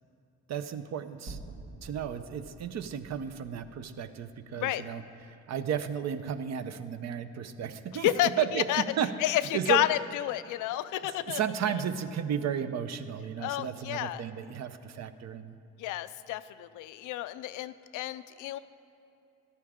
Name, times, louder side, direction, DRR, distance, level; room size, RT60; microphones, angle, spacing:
voice 1, 0.5-1.4 1.8-5.0 5.5-8.1 8.4-9.8 11.3-15.5, right 8 dB, 60° right, 11 dB, 0.7 m, -33 dB
sound 1, 1.3-5.5, right 2 dB, 85° right, 1.8 m, -49 dB
voice 2, 7.9-8.8 9.2-11.4 13.4-14.2 15.8-18.6, left 14 dB, 90° left, 13 dB, 0.5 m, -30 dB
14.0 x 11.5 x 3.7 m, 2.7 s
cardioid pair, 90°, 30 cm